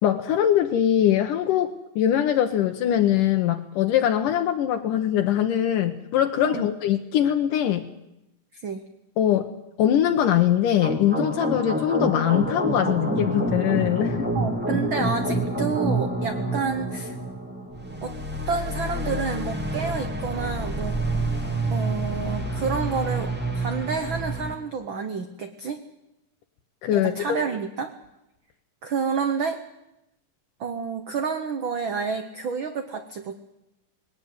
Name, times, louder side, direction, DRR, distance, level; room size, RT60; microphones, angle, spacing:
voice 1, 0.0-7.8 9.2-9.5 9.8-14.3 26.8-27.4, left 11 dB, 75° left, 5 dB, 2.5 m, -22 dB
sound 1, 10.8-24.5, right 1 dB, 5° right, 2.2 m, -28 dB
voice 2, 14.3-17.1 18.0-18.2 18.5-21.0 21.7-25.8 26.9-27.9 28.8-29.6 30.6-33.3, right 5 dB, 75° right, 8 dB, 1.1 m, -29 dB
20.0 x 18.0 x 9.6 m, 0.90 s
omnidirectional pair, 3.9 m